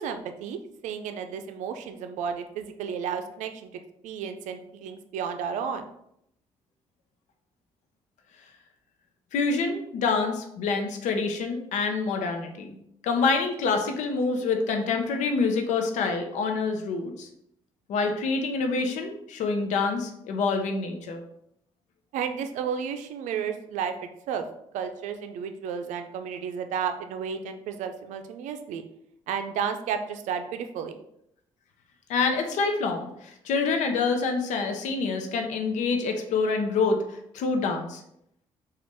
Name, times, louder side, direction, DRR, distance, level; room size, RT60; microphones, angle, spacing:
voice 1, 0.0-3.7 4.0-5.8 22.1-23.9 24.3-24.4 24.7-28.8 29.3-31.0, right 7 dB, 85° right, 7 dB, 0.5 m, -32 dB
voice 2, 9.3-12.8 13.0-17.3 17.9-21.2 32.1-38.0, left 4 dB, 85° left, 4 dB, 0.7 m, -26 dB
4.3 x 2.4 x 4.6 m, 0.75 s
cardioid pair, 85°, 12 cm